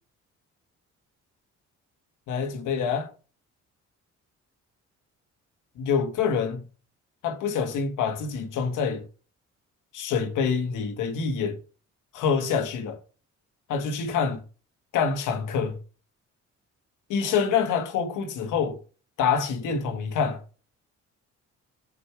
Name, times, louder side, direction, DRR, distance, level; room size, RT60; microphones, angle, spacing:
voice 1, 2.3-3.0 5.8-6.6 7.2-9.0 9.9-11.6 12.1-13.0 13.7-14.4 14.9-15.8 17.1-18.8 19.2-20.4, left 6 dB, 85° left, 1.6 m, -26 dB
6.6 x 5.3 x 4.6 m
cardioid pair, 90°, 30 cm